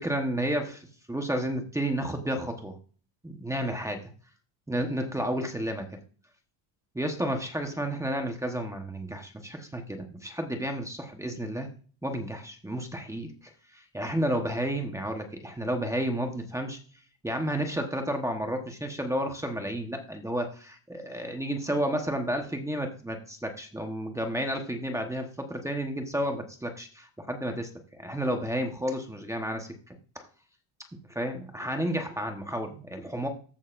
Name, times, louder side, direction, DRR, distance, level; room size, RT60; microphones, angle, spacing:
voice 1, 0.0-2.8 3.2-4.0 4.7-6.0 6.9-11.7 12.0-13.3 13.7-16.8 17.2-27.7 28.0-30.3 31.1-33.3, equal, 5° right, 4 dB, 1.1 m, -31 dB
14.5 x 6.5 x 2.5 m, 0.39 s
cardioid pair, 150°, 49 cm